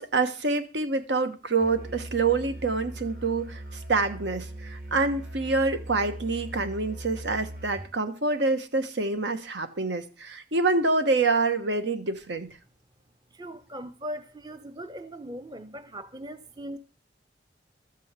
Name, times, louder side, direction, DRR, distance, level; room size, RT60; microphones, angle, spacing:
voice 1, 0.0-3.6 3.9-12.5, right 3 dB, 80° right, 1.2 m, -26 dB
Musical instrument, 1.6-8.0, right 1 dB, 50° right, 2.0 m, -40 dB
voice 2, 13.3-16.8, equal, 20° right, 0.6 m, -39 dB
13.0 x 5.5 x 8.1 m
head